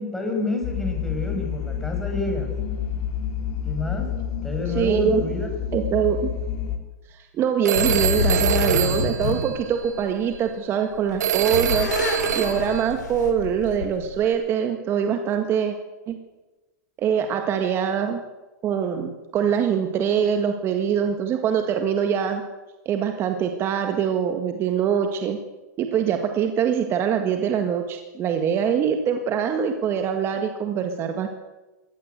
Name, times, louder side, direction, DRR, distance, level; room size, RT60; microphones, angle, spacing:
voice 1, 0.0-2.5 3.6-4.1 4.4-5.6, left 2 dB, 5° left, 1 dB, 6.0 m, -28 dB
sound 1, 0.6-6.8, left 8 dB, 40° left, 3.4 m, -29 dB
voice 2, 4.8-5.2 5.7-6.3 7.1-11.9 12.3-15.8 16.1-16.2 17.0-18.2 18.6-22.4 22.9-25.4 25.8-31.3, right 8 dB, 25° right, 6 dB, 1.8 m, -23 dB
Telephone, 7.6-10.0 11.2-12.9, right 10 dB, 75° right, 1.9 m, -25 dB
sound 2, 7.7-10.5 10.9-14.3, left 6 dB, 85° left, 4.8 m, -27 dB
22.0 x 17.5 x 8.1 m, 1.1 s
hypercardioid pair, 145°, 9 cm